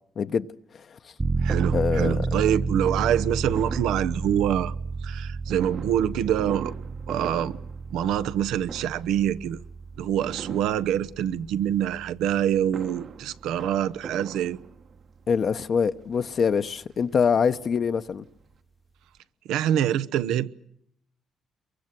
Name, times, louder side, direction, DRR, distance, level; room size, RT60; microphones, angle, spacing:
voice 1, 0.2-0.5 0.7-1.1 1.7-2.3 15.3-18.2, left 6 dB, 50° left, 0.9 m, -25 dB
sound 1, 1.2-13.7 14.1-14.2, right 4 dB, 20° right, 1.1 m, -31 dB
voice 2, 1.4-4.7 5.0-6.7 7.1-7.5 7.9-9.6 10.0-14.6 19.5-20.5, right 10 dB, 90° right, 0.9 m, -25 dB
Fireworks, 1.5-4.7 5.5-8.4 8.6-9.3 10.2-11.3 12.4-15.1 15.9-16.0 16.3-16.4 16.7-17.9 18.3-18.4 18.5-18.6, right 6 dB, 60° right, 1.4 m, -41 dB
28.5 x 23.5 x 6.1 m
cardioid pair, 90°, 0 cm